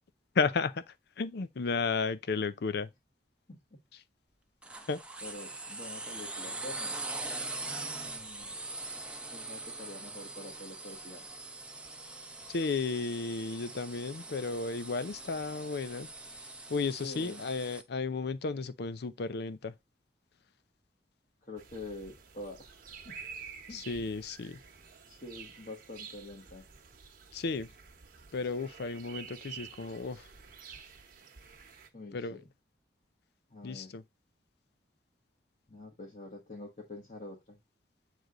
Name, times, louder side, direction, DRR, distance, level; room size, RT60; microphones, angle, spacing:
voice 1, 0.3-2.9 4.9-5.0 12.5-16.1 16.7-19.7 23.7-24.6 27.3-27.7 28.3-30.3 32.1-32.4 33.6-34.0, left 4 dB, 65° left, 0.5 m, -33 dB
sound 1, 4.6-17.8, right 2 dB, 5° right, 0.7 m, -42 dB
voice 2, 5.2-7.0 7.9-8.6 9.2-11.3 17.0-17.4 21.4-23.2 23.7-23.8 25.1-26.6 31.9-32.5 33.5-33.9 35.7-37.6, left 2 dB, 45° left, 1.3 m, -46 dB
sound 2, 21.6-31.9, right 6 dB, 55° right, 1.1 m, -50 dB
8.0 x 3.3 x 3.8 m
head